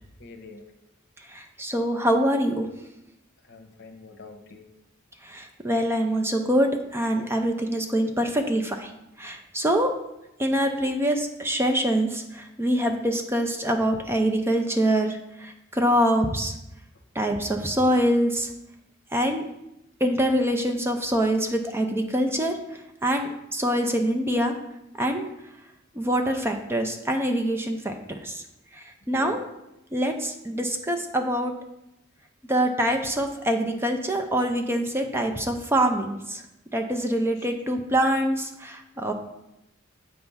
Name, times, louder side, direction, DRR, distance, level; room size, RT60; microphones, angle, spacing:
voice 1, 0.2-0.7 3.4-4.7 29.1-29.4 37.4-37.5, left 4 dB, 60° left, 5 dB, 0.9 m, -44 dB
voice 2, 1.2-2.7 5.2-8.9 9.2-9.9 10.4-16.5 17.1-18.5 19.1-19.4 20.0-24.6 25.0-25.2 25.9-28.4 28.7-29.4 29.9-31.5 32.5-36.4 36.7-39.1, equal, 10° right, 4 dB, 0.5 m, -25 dB
7.7 x 3.4 x 5.5 m, 0.88 s
head